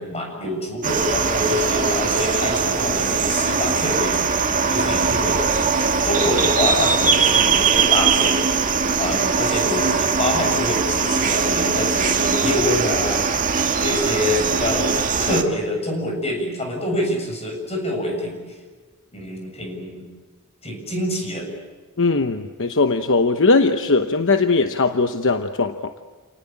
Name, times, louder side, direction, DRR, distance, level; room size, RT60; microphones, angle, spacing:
voice 1, 0.0-4.3 4.7-5.4 6.0-8.6 9.0-13.2 13.8-14.9 15.2-18.4 19.1-20.1 20.6-21.5, left 1 dB, 30° left, 2 dB, 7.4 m, -26 dB
sound 1, 0.8-15.4, right 5 dB, 35° right, 1.9 m, -20 dB
voice 2, 22.0-25.9, left 3 dB, 60° left, 7 dB, 1.0 m, -19 dB
29.5 x 19.0 x 8.7 m, 1.4 s
head